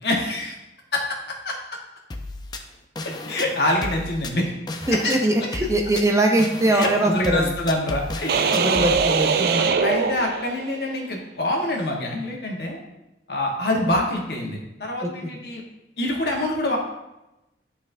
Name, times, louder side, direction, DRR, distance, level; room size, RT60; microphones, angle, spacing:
voice 1, 0.0-0.6 0.9-1.0 1.4-1.5 3.3-4.5 5.0-5.1 6.7-8.5 9.3-12.8 13.3-15.6 16.0-16.8, left 1 dB, 65° left, 0 dB, 1.3 m, -25 dB
sound 1, 2.1-9.0, left 2 dB, 25° left, 0.5 m, -34 dB
voice 2, 4.9-7.5 8.5-9.4 15.0-15.1, right 1 dB, 15° right, 2 dB, 0.6 m, -21 dB
sound 2, 8.3-10.9, right 5 dB, 60° right, 0.4 m, -22 dB
11.0 x 4.1 x 2.6 m, 0.93 s
head